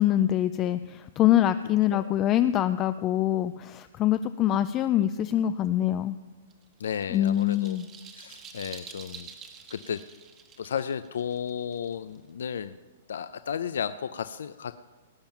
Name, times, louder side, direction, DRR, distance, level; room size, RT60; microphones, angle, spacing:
voice 1, 0.0-6.2 7.1-7.8, left 12 dB, 20° left, 12 dB, 0.3 m, -24 dB
sound 1, 6.5-12.3, right 6 dB, 20° right, 1.2 m, -47 dB
voice 2, 6.8-7.8 8.1-9.3 9.7-10.0 10.6-12.8 13.1-14.7, left 8 dB, 85° left, 13 dB, 0.5 m, -33 dB
18.0 x 9.0 x 5.8 m, 1.3 s
hypercardioid pair, 165°, 0 cm